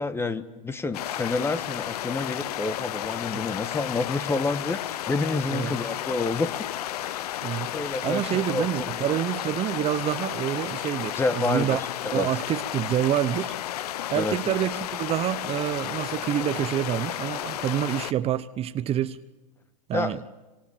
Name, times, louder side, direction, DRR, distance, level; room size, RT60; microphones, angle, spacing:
voice 1, 0.0-6.6 7.0-7.2 7.7-8.9 11.2-11.8 12.0-12.3 14.1-14.4 19.9-20.2, left 3 dB, 10° left, 1.4 m, -28 dB
sound 1, 0.9-18.1, left 12 dB, 65° left, 0.9 m, -33 dB
voice 2, 8.0-11.8 12.1-13.5 14.1-19.2 19.9-20.2, right 12 dB, 30° right, 0.9 m, -27 dB
27.0 x 26.5 x 7.4 m
hypercardioid pair, 110°, 21 cm